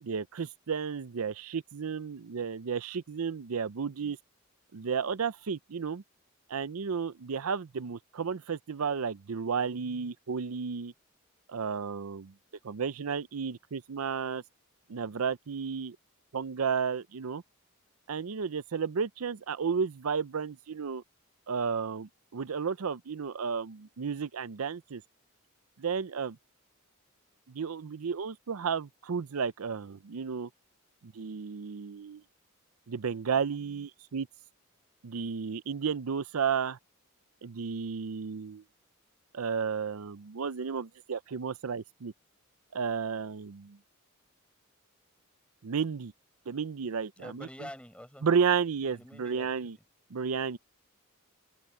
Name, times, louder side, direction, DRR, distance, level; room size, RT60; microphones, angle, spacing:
voice 1, 0.0-4.2 4.7-6.0 6.5-10.9 11.5-12.3 12.6-14.4 14.9-16.0 16.3-17.4 18.1-21.0 21.5-25.0 25.8-26.4 27.5-30.5 31.0-32.2 32.9-34.3 35.0-36.8 37.4-38.6 39.3-42.1 42.7-43.8 45.6-46.1 46.5-47.5 48.2-49.8 50.1-50.6, right 6 dB, 90° right, 0.6 m, -32 dB
voice 2, 47.2-48.3 48.9-49.5, left 1 dB, 5° left, 6.0 m, -46 dB
open air
head